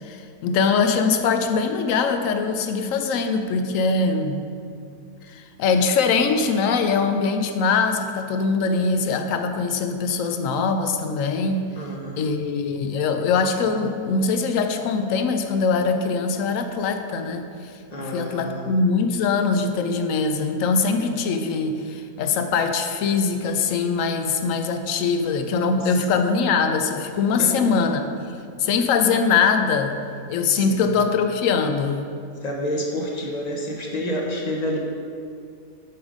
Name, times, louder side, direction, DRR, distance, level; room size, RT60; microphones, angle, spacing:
voice 1, 0.0-4.4 5.3-11.7 12.2-17.4 18.0-28.0 28.6-30.0 30.3-32.0, left 5 dB, 70° left, 7 dB, 0.8 m, -22 dB
voice 2, 11.7-12.3 17.9-18.7 25.8-26.0 27.4-27.5 30.5-30.9 32.4-34.8, equal, 35° left, 0 dB, 0.7 m, -29 dB
7.1 x 5.0 x 5.1 m, 2.4 s
omnidirectional pair, 1.6 m